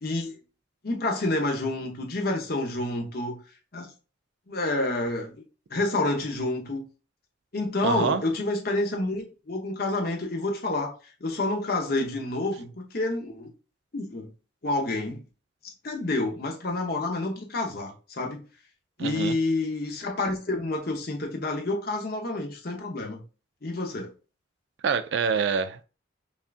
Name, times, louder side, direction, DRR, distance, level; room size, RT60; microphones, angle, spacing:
voice 1, 0.0-0.4 0.8-3.4 3.7-3.9 4.5-5.3 5.7-6.8 7.5-10.9 11.2-13.5 13.9-14.3 14.6-15.2 15.8-18.4 19.0-23.2 23.6-24.1, left 2 dB, 50° left, 0.8 m, -28 dB
voice 2, 7.8-8.2 19.0-19.4 24.8-25.8, right 6 dB, 65° right, 0.3 m, -26 dB
5.4 x 2.4 x 2.4 m
head